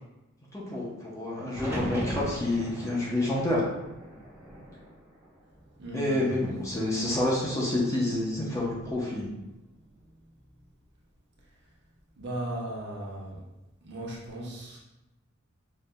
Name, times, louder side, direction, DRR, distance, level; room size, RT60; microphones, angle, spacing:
voice 1, 0.5-3.6 5.9-9.3, left 1 dB, 15° left, -5 dB, 0.7 m, -28 dB
sound 1, 1.5-5.6 5.9-6.7 8.6-9.0, equal, 15° right, 0.8 m, -38 dB
voice 2, 5.8-6.4 12.2-13.4 13.8-14.8, right 1 dB, 55° right, -4 dB, 0.9 m, -36 dB
5.3 x 2.6 x 2.2 m, 0.98 s
head